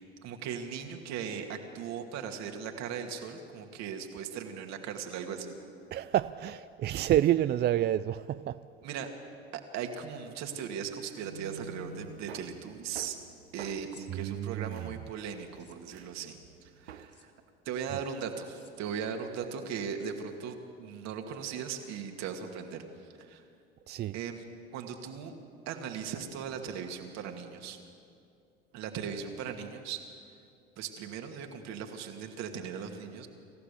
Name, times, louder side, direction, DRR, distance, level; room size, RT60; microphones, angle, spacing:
voice 1, 0.0-5.6 8.8-9.1 9.7-13.2 13.5-17.3 17.7-22.8 23.2-23.4 24.1-24.4 24.7-25.3 25.7-27.8 28.7-30.0 30.8-33.3, right 7 dB, 60° right, 4 dB, 2.3 m, -38 dB
voice 2, 5.9-8.6 14.1-14.9 23.9-24.2, right 12 dB, 35° right, 13 dB, 0.4 m, -29 dB
sound 1, 11.2-17.1, right 6 dB, 85° right, 1.0 m, -48 dB
sound 2, 13.9-14.1 15.4-15.8 17.0-17.3 18.4-18.7 19.8-20.1 21.3-21.9, left 6 dB, 35° left, 3.1 m, -59 dB
26.5 x 15.0 x 7.0 m, 2.5 s
hypercardioid pair, 65°, 31 cm